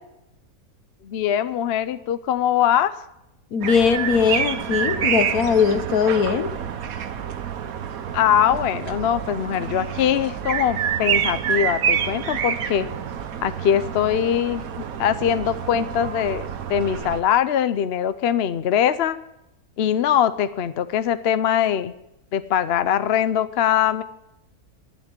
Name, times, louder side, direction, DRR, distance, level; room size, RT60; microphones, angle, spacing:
voice 1, 1.0-2.9 8.1-12.9 13.4-14.6 15.0-19.2 19.8-21.9 22.3-24.0, left 9 dB, 55° left, 13 dB, 0.7 m, -22 dB
voice 2, 3.5-6.5, left 6 dB, 75° left, 10 dB, 1.5 m, -20 dB
sound 1, 3.6-17.2, right 8 dB, 70° right, 1.3 m, -27 dB
12.0 x 7.4 x 9.9 m, 0.85 s
omnidirectional pair, 1.6 m